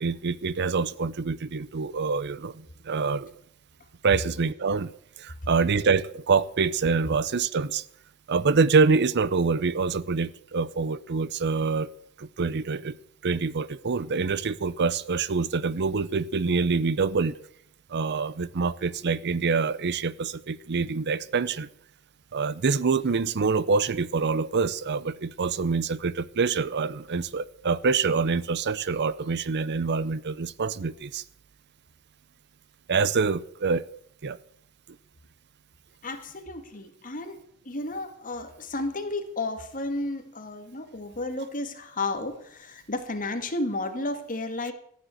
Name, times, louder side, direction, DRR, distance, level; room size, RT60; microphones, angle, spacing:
voice 1, 0.0-3.3 4.0-4.9 5.2-7.9 8.3-11.9 12.2-13.0 13.2-17.4 17.9-21.7 22.3-31.2 32.9-33.8 34.2-34.4, right 4 dB, 50° right, 18 dB, 0.6 m, -26 dB
voice 2, 36.0-37.4 37.7-44.7, left 2 dB, 35° left, 7 dB, 2.0 m, -32 dB
14.0 x 9.5 x 7.8 m, 0.67 s
head